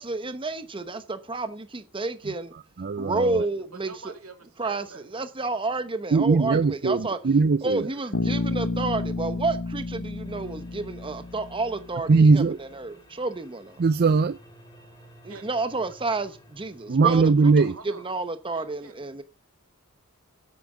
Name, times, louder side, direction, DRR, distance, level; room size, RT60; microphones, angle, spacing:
voice 1, 0.0-2.5 3.0-3.9 4.6-7.2 7.6-13.8 15.2-17.2 17.6-19.2, right 3 dB, 25° right, 0.9 m, -30 dB
voice 2, 2.8-3.4 6.1-7.9 12.1-12.6 13.8-14.4 16.9-17.7, right 4 dB, 45° right, 0.5 m, -20 dB
voice 3, 3.4-5.6 8.1-8.2 9.0-9.2 15.2-15.6 17.1-18.1 18.5-19.1, right 4 dB, 85° right, 2.5 m, -46 dB
Bass guitar, 8.1-12.0, left 2 dB, 80° left, 1.1 m, -31 dB
sound 1, 10.2-17.8, equal, 20° left, 3.2 m, -54 dB
9.2 x 8.7 x 7.2 m
head